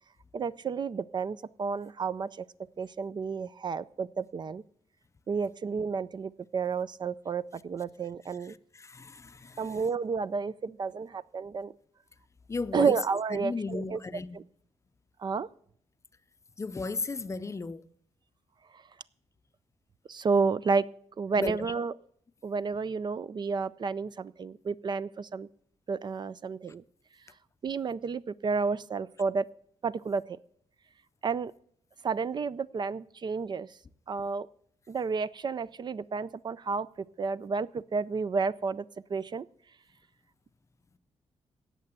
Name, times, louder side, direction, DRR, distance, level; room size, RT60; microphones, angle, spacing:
voice 1, 0.3-2.5 2.8-4.6 5.3-8.5 9.6-11.7 12.7-14.0 14.3-14.4 15.2-15.5 20.1-20.8 21.2-21.9 22.4-25.5 25.9-26.8 27.6-29.5 29.8-30.4 31.2-31.5 32.0-33.7 34.1-34.5 34.9-38.8 39.1-39.5, right 5 dB, 40° right, 0.4 m, -31 dB
voice 2, 8.7-9.8 12.5-13.0 13.3-14.5 16.6-17.9 21.4-21.7, left 4 dB, 25° left, 0.6 m, -35 dB
17.5 x 6.7 x 7.5 m
cardioid pair, 105°, 11 cm